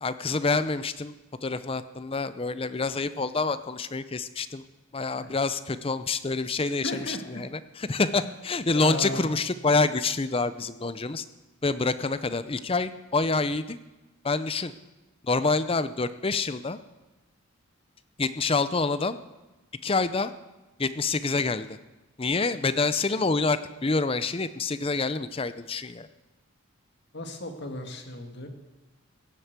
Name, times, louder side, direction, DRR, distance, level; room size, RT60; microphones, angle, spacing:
voice 1, 0.0-1.1 1.4-4.6 4.9-11.2 11.6-13.8 14.2-14.7 15.2-16.8 18.2-19.2 19.8-20.3 20.8-21.8 22.2-26.1, left 3 dB, 25° left, 13 dB, 0.5 m, -27 dB
voice 2, 6.8-7.4 8.7-9.3 27.1-28.5, left 1 dB, 50° left, 4 dB, 1.9 m, -35 dB
17.0 x 8.0 x 8.2 m, 1.1 s
head